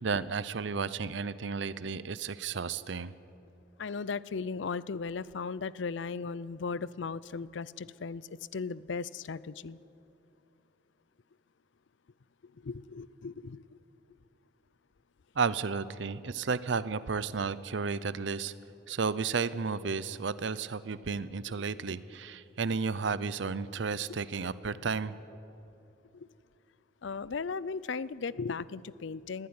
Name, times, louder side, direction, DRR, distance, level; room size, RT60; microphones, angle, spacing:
voice 1, 0.0-3.1 15.4-18.5 18.9-25.1, right 5 dB, 70° right, 16 dB, 0.6 m, -33 dB
voice 2, 3.8-9.8 12.6-13.6 26.1-26.3 27.0-29.5, left 5 dB, 70° left, 19 dB, 0.5 m, -37 dB
21.0 x 14.5 x 9.6 m, 2.8 s
head